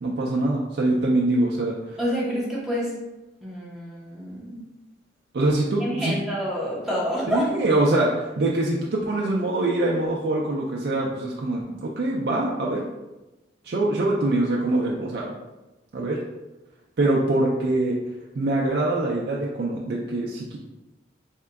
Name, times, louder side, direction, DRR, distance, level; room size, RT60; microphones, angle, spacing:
voice 1, 0.0-2.0 5.3-6.2 7.3-12.8 13.6-15.3 15.9-16.2 17.0-18.0 18.4-20.6, right 2 dB, 60° right, -3 dB, 0.4 m, -24 dB
voice 2, 2.0-2.9 3.4-4.6 5.8-7.5, equal, ahead, -7 dB, 0.9 m, -28 dB
3.6 x 3.4 x 2.2 m, 1.0 s
head